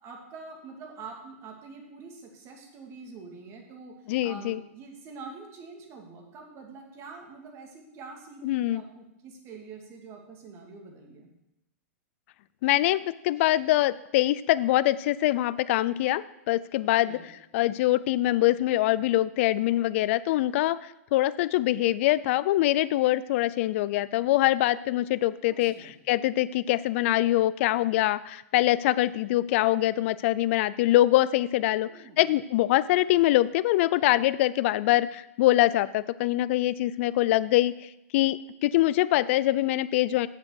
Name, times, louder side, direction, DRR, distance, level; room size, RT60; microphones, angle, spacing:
voice 1, 0.0-4.0 4.2-11.3 17.0-17.3 25.4-25.9 31.8-32.2, right 4 dB, 35° right, 1 dB, 2.3 m, -45 dB
voice 2, 4.1-4.6 8.4-8.8 12.6-17.2 17.5-31.9 32.2-40.3, left 15 dB, 55° left, 17 dB, 0.4 m, -24 dB
7.8 x 7.5 x 6.4 m, 0.88 s
hypercardioid pair, 135°, 8 cm